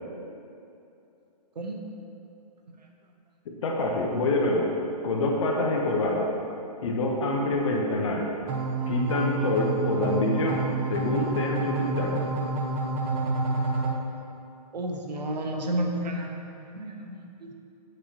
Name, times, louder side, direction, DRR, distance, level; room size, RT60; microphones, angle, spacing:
voice 1, 3.5-4.7 5.0-6.3 6.8-8.3 8.9-10.6 10.9-12.2, left 2 dB, 50° left, 0 dB, 0.7 m, -26 dB
sound 1, 8.5-13.9, right 3 dB, 25° right, 0.4 m, -29 dB
voice 2, 14.7-17.5, right 1 dB, 85° right, 2 dB, 0.8 m, -32 dB
7.8 x 4.3 x 2.8 m, 2.7 s
hypercardioid pair, 145°, 21 cm